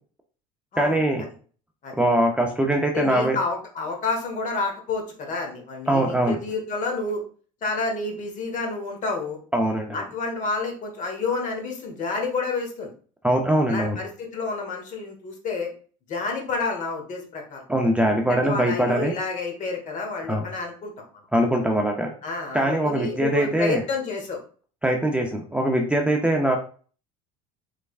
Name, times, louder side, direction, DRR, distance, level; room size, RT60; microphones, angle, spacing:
voice 1, 0.8-1.3 2.0-3.4 5.9-6.4 9.5-10.0 13.2-14.0 17.7-19.1 20.3-20.4 21.3-22.1 22.5-23.8 24.8-26.6, right 1 dB, 5° right, 1 dB, 0.4 m, -22 dB
voice 2, 2.9-7.2 7.6-9.4 9.9-12.9 13.7-15.7 16.1-17.6 18.3-21.1 22.2-24.4, left 4 dB, 45° left, 2 dB, 1.2 m, -29 dB
3.3 x 3.2 x 2.3 m, 0.41 s
supercardioid pair, 105°, 18 cm